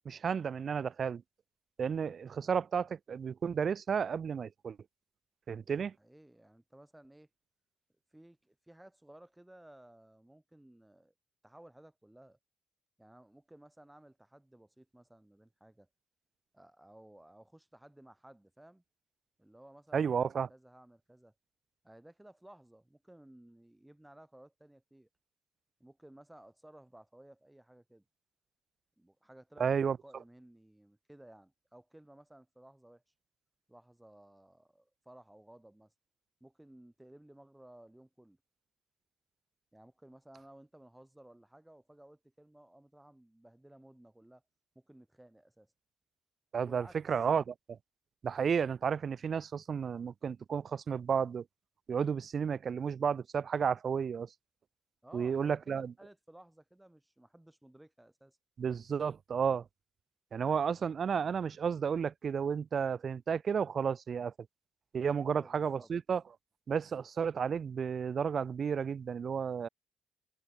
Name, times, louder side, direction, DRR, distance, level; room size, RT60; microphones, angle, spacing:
voice 1, 0.0-1.2 1.8-4.8 5.5-5.9 19.9-20.5 29.6-30.0 46.5-47.8 48.2-51.4 51.9-54.3 55.1-55.9 58.6-59.6 60.3-64.3 64.9-66.2 66.7-69.7, right 7 dB, 50° right, 0.7 m, -32 dB
voice 2, 5.7-7.3 8.1-11.1 11.4-12.4 13.0-15.9 16.5-18.8 19.4-21.3 21.8-25.1 25.8-28.0 29.0-33.0 33.7-35.9 36.4-38.4 39.7-44.4 44.7-45.7 46.5-47.0 55.0-58.4 65.2-65.9, right 1 dB, 5° right, 4.7 m, -57 dB
cardioid pair, 90°, 0 cm